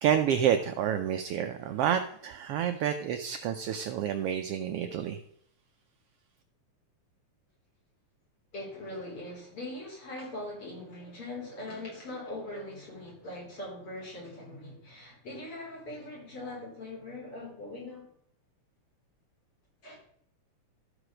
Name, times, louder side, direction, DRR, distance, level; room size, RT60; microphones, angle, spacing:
voice 1, 0.0-5.2, right 9 dB, 90° right, 7 dB, 1.3 m, -29 dB
voice 2, 8.5-18.1 19.8-20.0, left 1 dB, 45° left, -3 dB, 4.6 m, -41 dB
13.0 x 4.9 x 6.2 m, 0.66 s
omnidirectional pair, 3.3 m